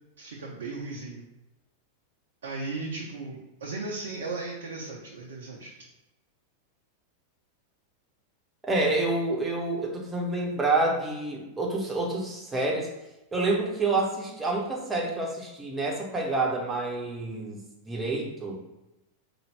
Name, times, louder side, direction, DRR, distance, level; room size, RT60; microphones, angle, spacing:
voice 1, 0.2-1.2 2.4-5.7, right 3 dB, 65° right, -2 dB, 0.6 m, -36 dB
voice 2, 8.7-12.9 13.3-17.6 17.8-18.6, right 2 dB, 15° right, -1 dB, 0.9 m, -28 dB
4.1 x 2.3 x 3.3 m, 0.96 s
figure-of-eight pair, 90°, 0 cm